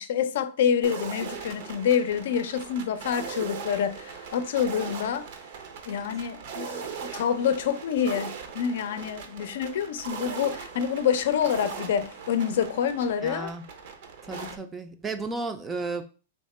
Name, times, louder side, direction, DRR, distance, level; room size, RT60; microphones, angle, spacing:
voice 1, 0.0-5.3 5.9-13.5 14.3-14.5, left 8 dB, 70° left, 0.5 m, -27 dB
sound 1, 0.8-14.6, right 6 dB, 60° right, 0.7 m, -39 dB
voice 2, 13.2-13.6 14.2-16.0, right 3 dB, 15° right, 0.5 m, -33 dB
3.5 x 2.8 x 4.2 m
hypercardioid pair, 140°, 0 cm